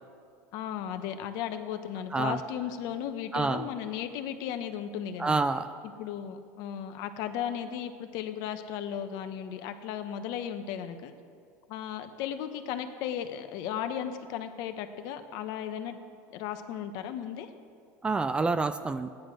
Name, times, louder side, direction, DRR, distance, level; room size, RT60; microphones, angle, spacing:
voice 1, 0.5-5.4 5.8-11.1 11.7-16.0 16.3-17.5, left 9 dB, 55° left, 8 dB, 1.1 m, -35 dB
voice 2, 3.3-3.7 5.2-5.7 18.0-19.1, right 3 dB, 15° right, 12 dB, 0.4 m, -28 dB
15.5 x 10.5 x 6.2 m, 2.3 s
supercardioid pair, 145°, 8 cm